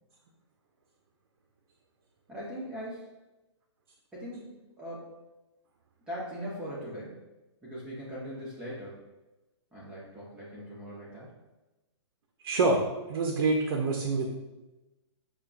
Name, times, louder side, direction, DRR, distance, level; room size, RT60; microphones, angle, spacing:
voice 1, 2.3-3.1 4.1-5.1 6.1-7.2 7.6-9.0 9.7-11.3, equal, 5° right, -8 dB, 0.4 m, -40 dB
voice 2, 12.4-12.8 13.1-14.3, right 3 dB, 55° right, 1 dB, 0.5 m, -26 dB
5.6 x 2.2 x 2.4 m, 1.1 s
hypercardioid pair, 160°, 15 cm